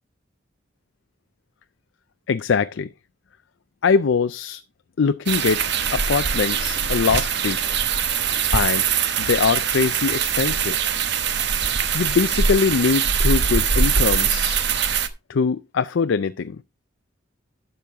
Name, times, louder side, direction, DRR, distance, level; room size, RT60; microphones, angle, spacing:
voice 1, 2.3-2.9 3.8-4.6 5.0-5.7 5.9-7.8 8.5-8.8 9.2-10.8 11.9-14.6 15.3-16.6, left 5 dB, 75° left, 0.4 m, -22 dB
sound 1, 5.3-15.1, right 6 dB, 60° right, 1.0 m, -22 dB
12.0 x 7.0 x 3.5 m
head